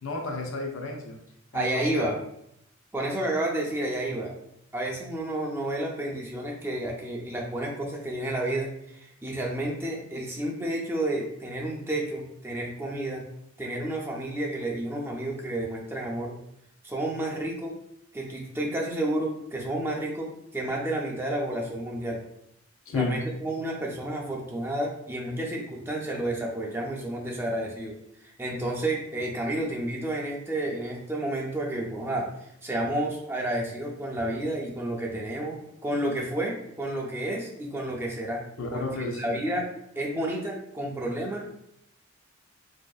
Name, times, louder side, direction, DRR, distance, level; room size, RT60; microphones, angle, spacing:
voice 1, 0.0-1.2 1.5-2.1 22.9-23.2 38.6-39.4, left 3 dB, 75° left, 2 dB, 0.5 m, -32 dB
voice 2, 1.5-2.2 2.9-4.3 4.7-13.3 13.6-16.4 16.8-17.8 18.1-22.2 22.9-27.9 28.2-38.4 38.7-39.7 40.0-41.5, right 1 dB, 10° right, -2 dB, 0.4 m, -31 dB
2.6 x 2.3 x 2.2 m, 0.76 s
head